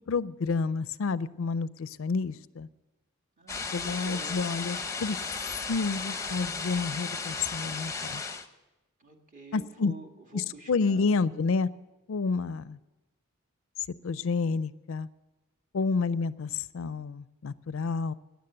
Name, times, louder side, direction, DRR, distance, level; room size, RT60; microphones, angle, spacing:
voice 1, 0.1-2.7 3.7-5.2 5.7-8.2 9.5-9.9 10.3-11.7 12.1-12.8 14.0-15.1 15.7-18.1, left 4 dB, 60° left, 16 dB, 0.4 m, -29 dB
voice 2, 3.4-4.5 9.0-11.1, right 2 dB, 35° right, 3 dB, 1.6 m, -48 dB
sound 1, 3.5-8.5, left 4 dB, 15° left, 0.7 m, -35 dB
15.5 x 10.5 x 7.8 m, 1.1 s
head